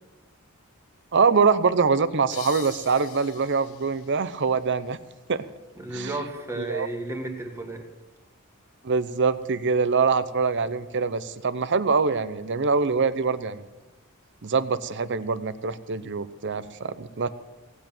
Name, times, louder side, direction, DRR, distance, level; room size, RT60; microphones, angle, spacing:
voice 1, 1.1-5.0 5.3-5.4 5.9-6.1 6.6-6.9 8.8-13.6 14.4-17.3, right 5 dB, 55° right, 14 dB, 0.7 m, -24 dB
sound 1, 2.3-5.7, left 9 dB, 75° left, 1.1 m, -45 dB
voice 2, 5.8-7.9, right 2 dB, 15° right, 3 dB, 1.9 m, -33 dB
17.5 x 8.2 x 8.9 m, 1.2 s
head